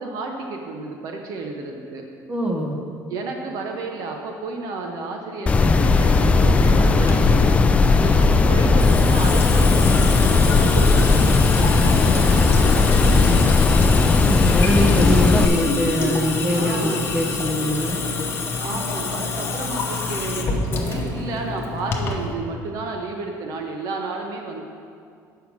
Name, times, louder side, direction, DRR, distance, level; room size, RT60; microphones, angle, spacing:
voice 1, 0.0-2.0 3.1-7.6 8.0-13.8 16.5-17.0 18.6-24.6, right 3 dB, 55° right, 2 dB, 0.9 m, -31 dB
voice 2, 2.3-2.8 14.2-18.0, equal, 15° right, -1 dB, 1.2 m, -23 dB
sound 1, 5.5-15.5, left 3 dB, 15° left, 0.3 m, -16 dB
Water tap faucet / Sink (filling or washing) / Drip, 6.4-22.3, left 4 dB, 30° left, 1.0 m, -27 dB
8.6 x 5.7 x 6.2 m, 2.3 s
cardioid pair, 150°, 7 cm